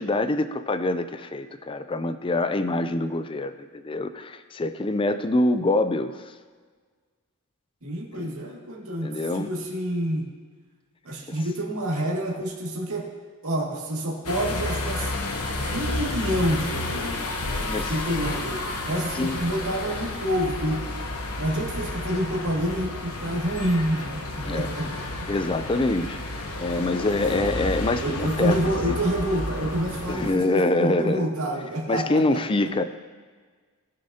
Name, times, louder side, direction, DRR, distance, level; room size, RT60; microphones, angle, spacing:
voice 1, 0.0-6.3 8.1-8.3 9.0-9.5 11.3-11.4 17.7-17.9 19.1-19.4 24.5-24.7 25.3-28.6 28.9-29.0 30.1-31.3 31.9-32.8, left 2 dB, 25° left, 11 dB, 0.4 m, -25 dB
voice 2, 7.8-9.1 9.3-10.3 11.0-13.1 13.4-15.1 15.7-20.8 21.4-25.3 28.0-32.4, right 1 dB, 70° right, -3 dB, 2.2 m, -28 dB
sound 1, 14.2-30.3, left 2 dB, 80° left, 1.1 m, -31 dB
19.5 x 6.5 x 2.8 m, 1.5 s
head